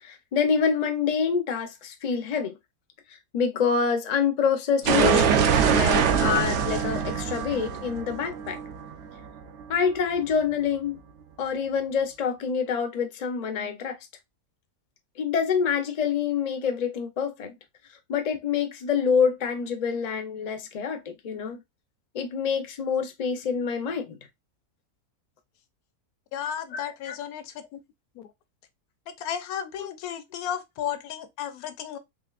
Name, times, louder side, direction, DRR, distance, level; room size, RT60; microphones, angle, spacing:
voice 1, 0.0-2.5 3.3-8.6 9.7-11.0 11.4-14.0 15.2-17.6 18.1-21.6 22.1-24.2 27.0-27.2 29.8-29.9, left 6 dB, 50° left, 0.5 m, -26 dB
sound 1, 4.8-9.6, right 6 dB, 65° right, 0.8 m, -23 dB
voice 2, 26.3-27.8 28.2-28.3 29.1-32.0, left 9 dB, 75° left, 1.1 m, -34 dB
4.2 x 3.2 x 2.4 m
omnidirectional pair, 1.6 m